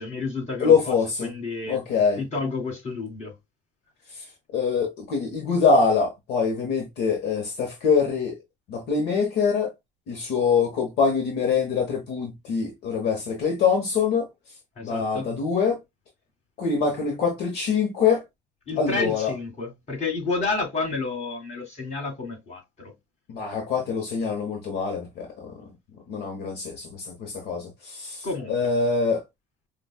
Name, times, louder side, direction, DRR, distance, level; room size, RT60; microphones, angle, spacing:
voice 1, 0.0-0.9 1.2-1.8 2.2-3.3 14.8-15.3 18.7-22.9 28.2-28.7, left 3 dB, 45° left, 2.1 m, -30 dB
voice 2, 0.6-1.3 1.7-2.2 4.5-8.4 8.7-9.7 10.1-14.3 14.8-15.8 16.6-18.2 18.8-19.3 23.3-25.6 26.1-29.2, left 5 dB, 75° left, 1.0 m, -24 dB
5.0 x 2.3 x 2.3 m
cardioid pair, 110°, 17 cm